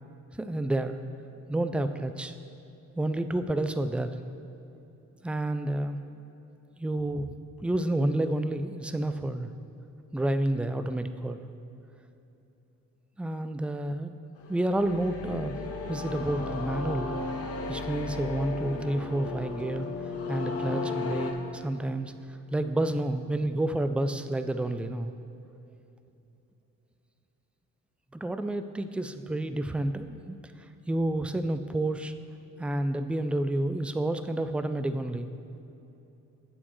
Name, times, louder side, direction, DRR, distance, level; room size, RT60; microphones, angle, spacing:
voice 1, 0.4-1.0 1.5-2.3 3.0-4.1 5.2-6.0 6.8-7.3 7.6-9.5 10.1-11.4 13.2-14.1 14.5-15.6 15.9-17.1 17.7-19.9 20.3-22.1 22.5-25.1 28.1-30.4 30.9-32.1 32.6-35.3, right 1 dB, 5° right, 9 dB, 0.3 m, -29 dB
sound 1, 14.4-21.3, left 4 dB, 50° left, 1.0 m, -35 dB
9.8 x 7.5 x 3.1 m, 2.9 s
cardioid pair, 90°, 30 cm